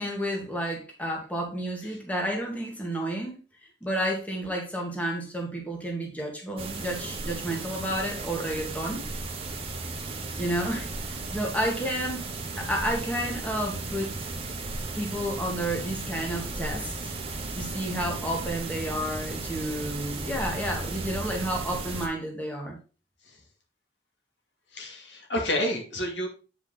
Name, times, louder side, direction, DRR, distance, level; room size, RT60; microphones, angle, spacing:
voice 1, 0.0-3.4 3.8-9.0 10.4-10.9 11.3-12.2 12.6-14.3 15.0-16.9 17.5-22.8, right 1 dB, 10° left, 0 dB, 1.9 m, -31 dB
sound 1, 6.6-22.1, right 3 dB, 35° right, 1.3 m, -35 dB
voice 2, 24.7-26.3, left 1 dB, 90° left, 2 dB, 2.4 m, -29 dB
8.5 x 5.3 x 3.9 m, 0.33 s
head